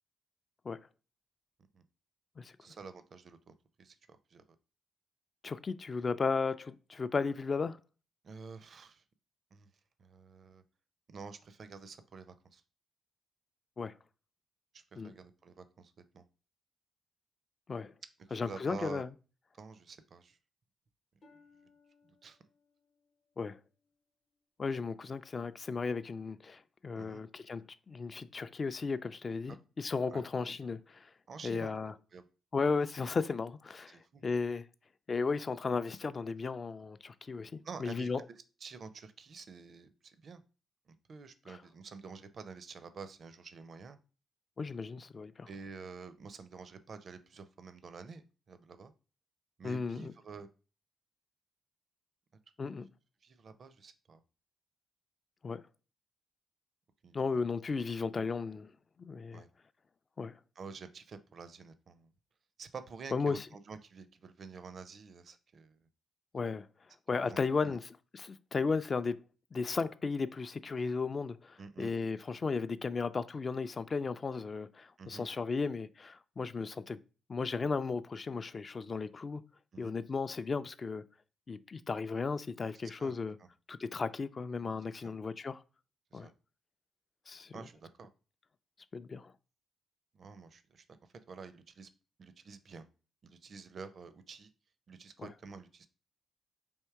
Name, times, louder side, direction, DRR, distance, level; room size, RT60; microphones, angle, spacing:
voice 1, 2.6-4.4 8.2-9.0 9.5-9.7 10.0-10.6 11.1-12.6 14.7-16.2 18.3-19.0 19.6-20.4 22.0-22.4 27.0-27.2 29.5-29.6 30.1-30.2 31.3-31.7 32.1-32.2 33.9-34.2 37.6-38.1 38.6-40.4 40.9-44.0 45.5-48.9 49.6-50.5 53.2-54.2 57.0-57.2 59.3-59.5 60.6-62.1 62.6-65.8 67.1-67.8 71.6-71.9 75.0-75.3 79.7-80.0 83.0-83.1 83.4-83.5 85.0-85.1 86.1-86.3 87.5-88.1 90.1-90.8 91.3-91.9 92.2-92.9 93.2-94.5 94.9-95.9, right 5 dB, 55° right, 0.5 m, -49 dB
voice 2, 5.4-7.8 13.8-13.9 15.0-15.1 17.7-17.9 18.3-19.1 23.4-23.6 24.6-31.1 31.4-31.9 32.5-34.0 34.2-34.6 35.1-38.2 41.5-41.6 44.6-45.5 49.6-50.1 52.6-52.9 55.4-55.6 57.1-58.7 59.0-59.4 60.2-60.3 63.1-63.4 66.3-66.7 67.1-69.2 69.5-77.0 77.3-79.4 79.8-81.0 81.5-83.4 83.7-85.6 86.1-86.3 87.3-87.5 88.9-89.3 95.2-95.3, left 4 dB, 40° left, 0.3 m, -35 dB
Harp, 21.2-25.0 25.5-25.9 26.5-26.7, left 3 dB, 65° left, 0.9 m, -68 dB
3.6 x 2.8 x 4.5 m
hypercardioid pair, 40°, 0 cm